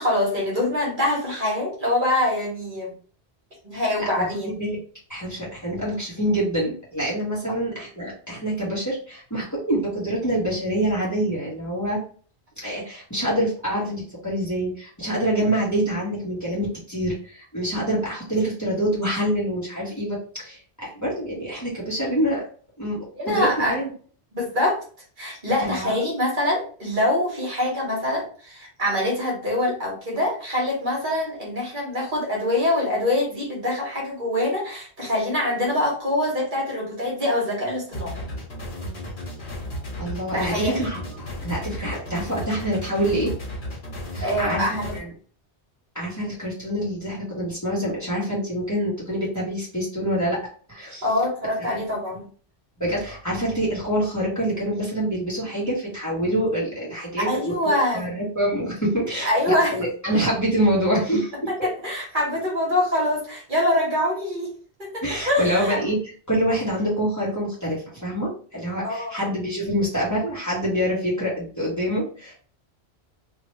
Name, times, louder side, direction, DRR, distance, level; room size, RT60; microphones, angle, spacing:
voice 1, 0.0-2.9 3.6-4.5 23.2-23.8 24.3-24.8 25.2-38.2 40.3-40.8 44.2-45.0 51.0-52.2 57.2-58.1 59.2-59.7 61.5-64.5 64.8-65.8 68.8-69.1, left 1 dB, 50° right, -3 dB, 1.4 m, -24 dB
voice 2, 3.7-4.3 4.6-4.8 5.1-12.0 12.6-22.4 22.8-23.9 25.6-25.9 40.0-41.0 41.4-43.3 44.1-44.7 44.9-45.1 45.9-50.4 50.7-51.0 51.7-51.8 52.1-52.2 52.8-61.3 65.0-66.0 66.3-72.3, right 1 dB, 15° left, -6 dB, 1.4 m, -26 dB
sound 1, 37.9-45.0, equal, 70° left, 1.5 m, -34 dB
3.0 x 2.8 x 3.0 m, 0.42 s
omnidirectional pair, 1.1 m